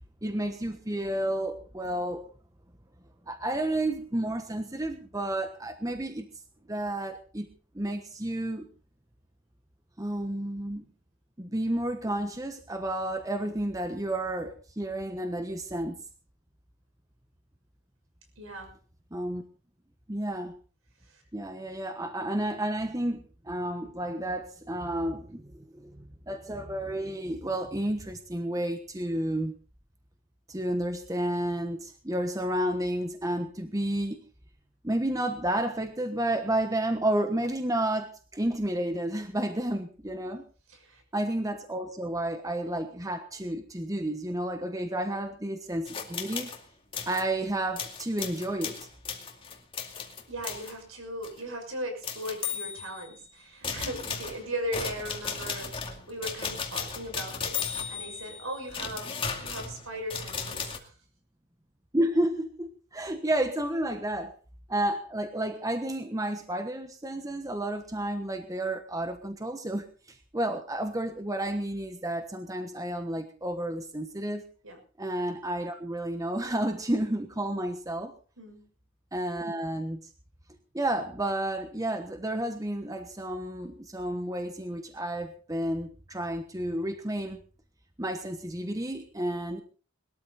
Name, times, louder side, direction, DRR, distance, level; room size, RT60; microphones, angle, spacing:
voice 1, 0.2-2.2 3.3-6.3 6.7-7.5 7.7-8.7 10.0-10.8 11.4-16.0 19.1-19.4 20.1-20.5 21.3-29.5 30.5-34.2 34.8-40.4 41.1-46.5 47.1-48.9 61.9-64.3 64.7-74.4 75.0-78.1 79.1-80.0 80.7-87.4 88.0-89.6, right 1 dB, 15° right, 7 dB, 1.2 m, -31 dB
voice 2, 18.4-18.8 21.0-21.2 40.7-41.0 50.3-60.9 74.6-74.8 78.4-78.7, equal, 70° right, 5 dB, 6.3 m, -38 dB
sound 1, 45.9-46.6 46.9-47.3 47.8-50.7 51.2-51.4 52.0-53.2 53.6-60.8, left 6 dB, 25° left, 2.4 m, -36 dB
21.5 x 13.0 x 4.2 m, 0.37 s
head